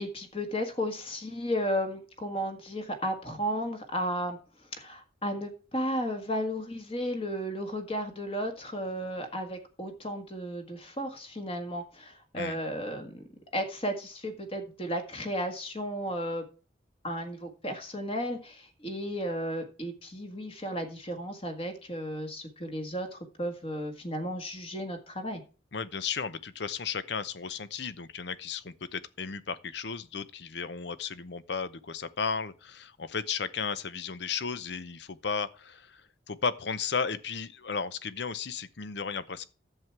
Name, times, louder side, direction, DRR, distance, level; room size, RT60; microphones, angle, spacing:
voice 1, 0.0-4.4 4.8-13.2 13.5-16.4 17.0-25.4, equal, 30° left, 1.7 m, -34 dB
voice 2, 25.7-39.4, left 5 dB, 60° left, 0.7 m, -34 dB
11.0 x 7.5 x 4.6 m
head